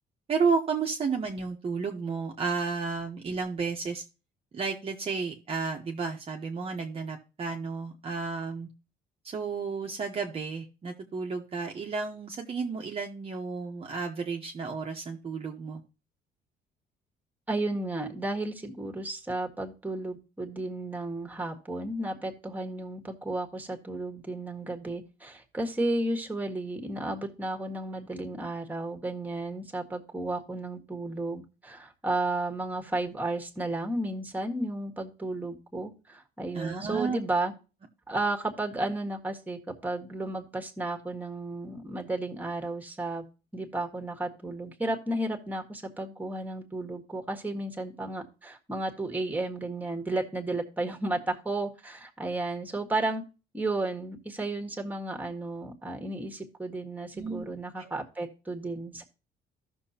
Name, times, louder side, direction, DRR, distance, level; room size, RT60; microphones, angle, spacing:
voice 1, 0.3-4.0 4.5-8.7 9.2-15.8 36.5-37.2 57.1-57.5 57.8-57.9, right 5 dB, 35° right, 1 dB, 1.1 m, -32 dB
voice 2, 17.5-37.5 38.1-43.2 43.5-53.2 53.5-59.0, right 2 dB, 10° right, 3 dB, 1.7 m, -33 dB
15.0 x 6.2 x 2.9 m, 0.33 s
cardioid pair, 110°, 17 cm